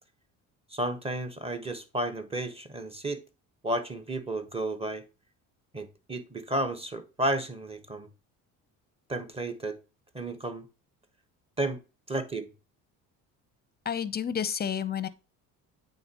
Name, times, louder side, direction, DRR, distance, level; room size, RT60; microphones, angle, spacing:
voice 1, 0.7-3.2 3.6-5.0 5.7-8.1 9.1-9.8 10.1-10.7 11.6-11.8 12.1-12.5, right 1 dB, 15° right, 1.1 m, -32 dB
voice 2, 13.8-15.1, left 8 dB, 25° left, 0.6 m, -30 dB
8.6 x 3.8 x 2.9 m
supercardioid pair, 90°, 37 cm